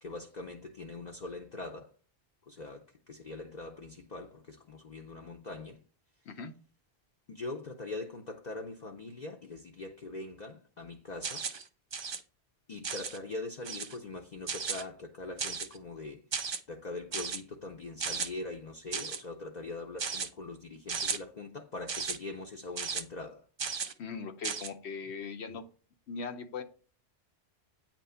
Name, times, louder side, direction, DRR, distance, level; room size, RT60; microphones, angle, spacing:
voice 1, 0.0-1.9 2.5-5.8 7.3-11.4 12.7-16.2 16.7-23.4, left 2 dB, 45° left, 0.7 m, -42 dB
sound 1, 11.2-11.6 11.9-12.2 12.8-13.2 13.6-14.0 14.5-14.8 15.4-15.8 16.3-16.6 17.1-17.4 18.0-18.3 18.9-19.2 20.0-20.3 20.9-21.2 21.9-22.2 22.8-23.0 23.6-23.9 24.4-24.7, right 5 dB, 45° right, 0.3 m, -35 dB
voice 2, 24.0-25.7 26.1-26.6, left 5 dB, 90° left, 1.1 m, -39 dB
8.7 x 3.0 x 5.6 m
omnidirectional pair, 1.1 m